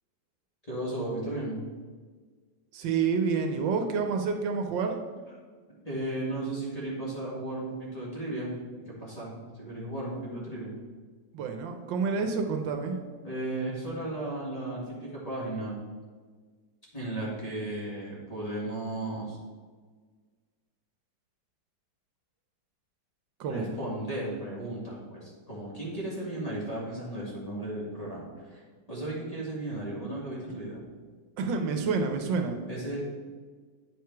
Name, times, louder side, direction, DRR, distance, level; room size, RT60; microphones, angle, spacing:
voice 1, 0.6-1.6 5.8-10.7 13.2-15.8 16.9-19.4 23.5-28.6 28.9-30.8 32.7-33.0, right 1 dB, 20° left, -6 dB, 1.8 m, -35 dB
voice 2, 2.7-5.0 11.3-13.0 23.4-23.7 31.4-32.6, right 5 dB, 75° right, 5 dB, 1.4 m, -28 dB
8.7 x 4.7 x 4.6 m, 1.5 s
omnidirectional pair, 2.0 m